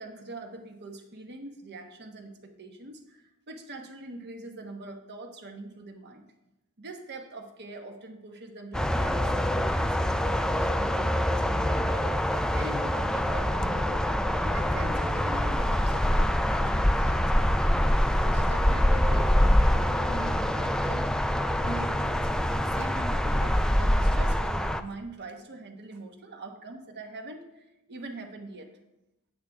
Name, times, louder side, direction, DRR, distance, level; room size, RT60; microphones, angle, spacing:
voice 1, 0.0-6.3 6.8-14.1 14.4-17.8 18.2-21.1 21.6-28.7, right 2 dB, 50° right, 4 dB, 1.1 m, -43 dB
sound 1, 8.7-24.8, equal, 5° left, 0.3 m, -25 dB
8.6 x 8.4 x 3.4 m, 0.91 s
head